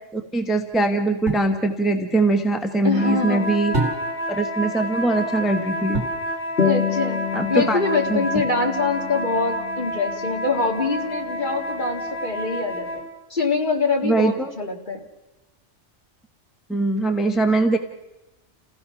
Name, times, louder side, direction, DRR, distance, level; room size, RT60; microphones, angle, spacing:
voice 1, 0.1-3.7 4.3-6.0 7.3-7.8 8.1-8.2 14.0-14.5 16.7-17.8, right 2 dB, ahead, 5 dB, 1.0 m, -22 dB
sound 1, 1.3-1.6 3.7-4.4 5.9-6.3 8.3-8.9, right 2 dB, 65° right, 2.5 m, -28 dB
voice 2, 2.8-3.6 6.6-7.2 7.5-12.9 13.3-15.0, left 4 dB, 40° left, 3 dB, 2.0 m, -24 dB
sound 2, 2.9-13.1, equal, 85° left, 4.5 m, -30 dB
sound 3, 6.6-11.6, left 8 dB, 55° left, 1.7 m, -29 dB
29.0 x 16.0 x 5.7 m, 1.0 s
omnidirectional pair, 1.3 m